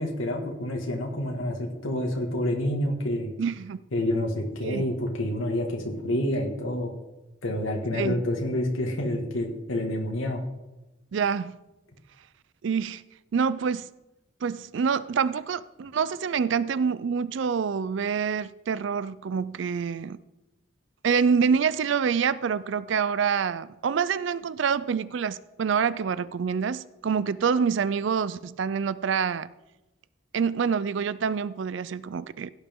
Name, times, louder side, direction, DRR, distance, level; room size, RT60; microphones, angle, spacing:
voice 1, 0.0-3.3 3.9-6.9 7.4-10.4, left 1 dB, 85° left, 1.9 m, -28 dB
voice 2, 3.4-3.8 4.6-4.9 7.9-8.2 11.1-11.6 12.6-13.0 13.3-13.9 14.4-20.2 21.0-29.5 30.3-32.5, right 6 dB, 70° right, 0.4 m, -26 dB
16.5 x 9.7 x 3.7 m
head